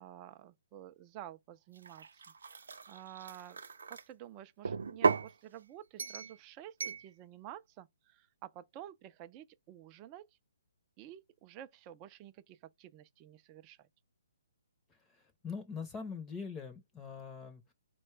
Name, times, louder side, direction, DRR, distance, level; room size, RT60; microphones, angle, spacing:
voice 1, 0.0-3.6 3.9-10.4 11.0-13.9, right 12 dB, 25° right, 0.4 m, -51 dB
sound 1, 1.8-4.0 4.6-5.3 6.0-6.3 6.8-7.0, right 5 dB, 75° right, 0.6 m, -35 dB
voice 2, 14.9-17.7, left 5 dB, 10° left, 0.7 m, -43 dB
4.1 x 2.1 x 3.2 m
hypercardioid pair, 160°, 0 cm